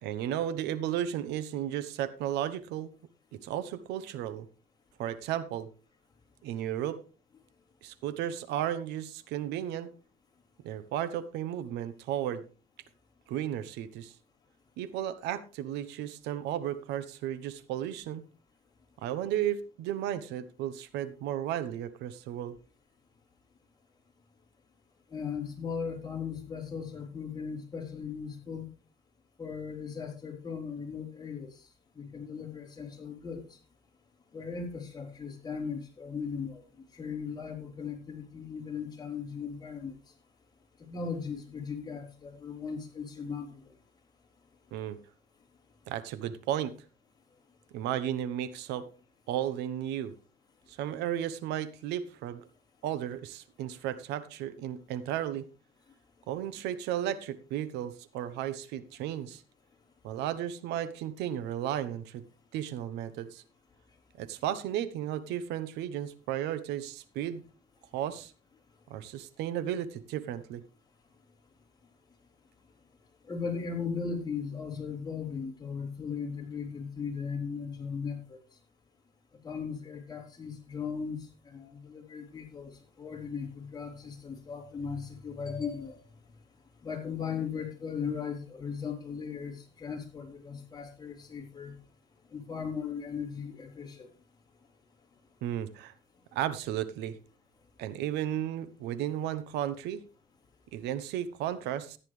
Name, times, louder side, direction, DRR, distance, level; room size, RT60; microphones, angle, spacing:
voice 1, 0.0-2.9 3.3-4.5 5.0-5.7 6.4-7.0 7.8-9.9 10.6-12.4 13.3-14.1 14.8-18.2 19.0-22.6 44.7-45.0 45.9-46.7 47.7-48.9 49.3-50.1 50.7-52.5 52.8-55.5 56.3-59.4 60.0-62.2 62.5-63.4 64.2-67.4 67.9-68.3 68.9-70.6 95.4-95.9 96.3-97.2 97.8-100.0 100.7-102.0, right 11 dB, 90° right, 15 dB, 1.0 m, -34 dB
voice 2, 25.1-28.7 29.4-31.5 32.0-33.4 34.3-36.6 36.9-39.9 40.8-43.6 73.3-78.4 79.4-86.0 86.8-91.7 92.3-94.1, left 6 dB, 25° left, 0 dB, 3.6 m, -37 dB
14.5 x 9.9 x 3.3 m, 0.34 s
cardioid pair, 110°, 17 cm